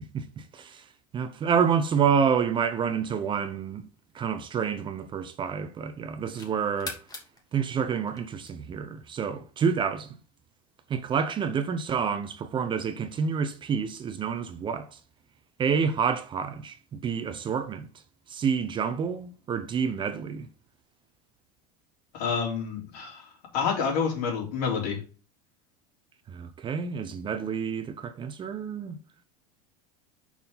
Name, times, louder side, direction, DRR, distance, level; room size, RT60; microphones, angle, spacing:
voice 1, 0.1-0.8 1.1-3.9 4.1-7.0 7.5-10.2 10.9-15.0 15.6-17.9 18.3-20.5 26.3-29.0, right 6 dB, 25° right, 0.7 m, -28 dB
sound 1, 4.0-5.5 6.0-8.9, left 3 dB, 20° left, 1.6 m, -44 dB
voice 2, 22.1-25.0, left 6 dB, 75° left, 3.6 m, -28 dB
5.8 x 4.5 x 5.4 m
supercardioid pair, 135°, 20 cm